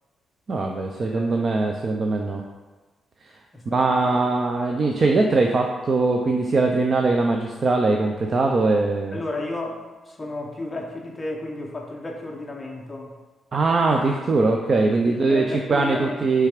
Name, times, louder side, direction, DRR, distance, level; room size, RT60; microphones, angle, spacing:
voice 1, 0.5-2.4 3.7-9.2 13.5-16.5, right 3 dB, 30° right, 2 dB, 0.4 m, -21 dB
voice 2, 1.0-1.5 3.5-4.2 9.1-13.1 14.8-16.3, left 2 dB, 15° left, 1 dB, 0.7 m, -33 dB
6.5 x 3.3 x 4.9 m, 1.2 s
wide cardioid pair, 180°, 0 cm